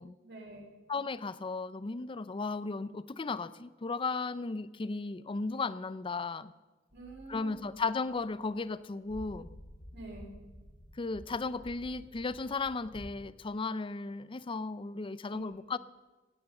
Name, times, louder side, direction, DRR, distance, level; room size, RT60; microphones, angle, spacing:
voice 1, 0.2-0.7 6.9-7.7 9.9-10.3 15.3-15.6, right 2 dB, 60° right, -1 dB, 4.2 m, -47 dB
voice 2, 0.9-6.5 7.3-9.5 11.0-15.8, left 3 dB, 25° left, 16 dB, 0.4 m, -35 dB
sound 1, 6.9-8.6 9.1-13.1, equal, 40° left, 1.8 m, -52 dB
16.5 x 9.5 x 6.7 m, 1.2 s
head